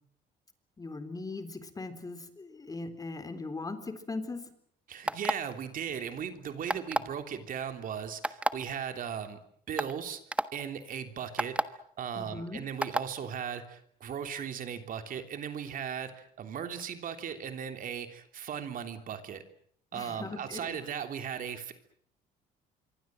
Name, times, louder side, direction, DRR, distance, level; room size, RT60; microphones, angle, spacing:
voice 1, 0.8-4.5 12.2-12.6 19.9-20.7, left 3 dB, 20° left, 10 dB, 3.7 m, -39 dB
voice 2, 4.9-9.4 9.7-10.2 10.5-19.4 19.9-21.7, right 8 dB, 55° right, 7 dB, 3.3 m, -37 dB
sound 1, 5.0-5.5 6.7-7.1 8.2-8.5 9.2-9.3 9.8-9.9 10.3-10.4 11.4-11.6 12.8-13.1, right 1 dB, 5° right, 1.3 m, -28 dB
26.5 x 23.5 x 7.7 m, 0.64 s
cardioid pair, 110°, 17 cm